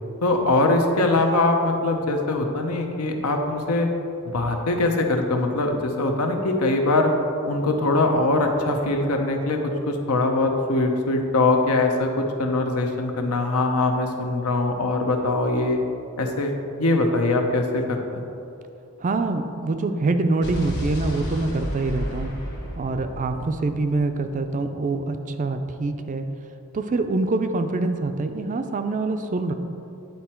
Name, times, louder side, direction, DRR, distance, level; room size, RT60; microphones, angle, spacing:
voice 1, 0.2-3.9 4.3-7.1 7.5-15.8 16.2-16.5 16.8-18.2, left 2 dB, 75° left, 3 dB, 0.8 m, -22 dB
voice 2, 19.0-22.3 22.7-26.3 26.7-29.5, right 3 dB, 35° right, 8 dB, 0.4 m, -25 dB
Explosion, 20.4-24.5, equal, 50° left, 1.5 m, -32 dB
9.3 x 4.3 x 4.4 m, 2.7 s
head